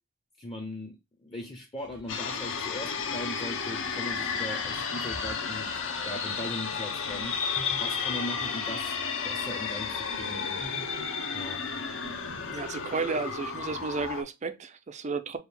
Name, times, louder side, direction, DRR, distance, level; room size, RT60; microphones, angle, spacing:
voice 1, 0.4-7.4 7.8-8.9 9.2-10.8 11.3-11.6, left 1 dB, 25° left, 0.7 m, -39 dB
sound 1, 1.8-2.2 4.6-5.3 7.1-7.8 10.1-10.8 12.0-12.6, right 1 dB, 80° right, 1.2 m, -45 dB
sound 2, 2.1-14.2, left 5 dB, 60° left, 0.8 m, -32 dB
voice 2, 12.5-15.4, right 4 dB, 30° right, 0.4 m, -33 dB
4.6 x 2.4 x 3.3 m
head